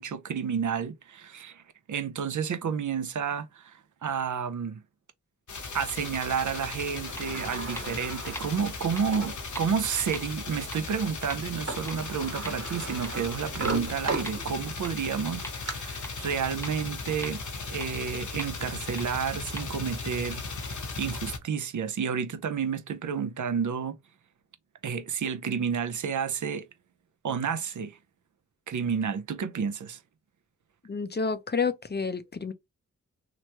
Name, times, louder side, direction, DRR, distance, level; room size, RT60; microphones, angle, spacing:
voice 1, 0.0-1.6 1.9-4.8 5.7-17.4 17.7-24.0 24.8-26.7 27.2-28.0 28.7-30.0, right 6 dB, 65° right, 0.5 m, -31 dB
sound 1, 5.5-21.4, left 4 dB, 65° left, 0.8 m, -37 dB
Sliding door, 6.8-9.4 10.0-10.1 11.4-11.5 11.7-14.8 15.3-15.7, right 3 dB, 50° right, 1.2 m, -37 dB
sound 2, 7.2-7.3 7.8-7.9 8.3-8.4 9.0-9.1 9.5-9.6 10.1-10.2 10.7-10.8 11.3-11.4 11.9-12.0 12.4-12.5 13.0-13.1 13.6-13.7 14.3-14.4 14.8-14.9 15.4-15.5 16.0-16.1 16.6-16.7 17.2-17.3 17.8-17.9 18.4-18.5 19.0-19.1 19.6-19.7, equal, 10° left, 0.8 m, -39 dB
voice 2, 30.8-32.5, left 5 dB, 35° left, 0.5 m, -29 dB
3.0 x 2.2 x 2.8 m
cardioid pair, 40°, 32 cm